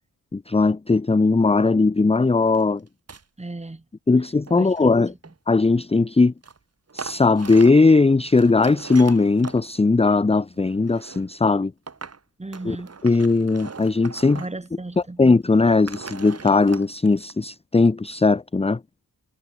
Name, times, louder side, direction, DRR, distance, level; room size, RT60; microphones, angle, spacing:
voice 1, 0.3-2.8 4.1-5.1 5.5-6.3 6.9-11.7 12.6-12.8 13.0-14.4 15.2-18.8, left 3 dB, 15° left, 0.8 m, -18 dB
sound 1, 2.5-2.6 2.9-3.2 4.3-5.6 6.4-6.6 6.9-7.9 8.3-9.6 10.5-11.3 11.9-12.2 12.5-14.7 14.9-15.0 15.6-17.3, right 5 dB, 40° right, 6.5 m, -40 dB
voice 2, 3.4-3.8 4.5-4.9 12.4-13.2 14.3-15.2, right 2 dB, 20° right, 4.3 m, -36 dB
wide cardioid pair, 130°, 37 cm